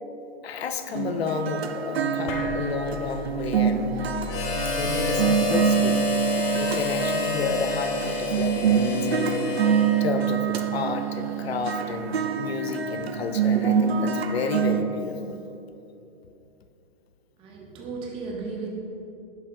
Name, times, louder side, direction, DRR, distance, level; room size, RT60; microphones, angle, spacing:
voice 1, 0.4-3.9 4.7-15.4, left 5 dB, 85° left, 8 dB, 0.6 m, -31 dB
sound 1, 0.9-14.8, right 7 dB, 90° right, 0.6 m, -26 dB
sound 2, 2.3-9.0, left 4 dB, 50° left, 0.9 m, -38 dB
Harmonica, 4.3-10.3, left 4 dB, 15° left, 0.3 m, -29 dB
voice 2, 17.4-18.7, right 4 dB, 20° right, -1 dB, 0.7 m, -35 dB
6.7 x 3.2 x 5.4 m, 2.8 s
hypercardioid pair, 130°, 30 cm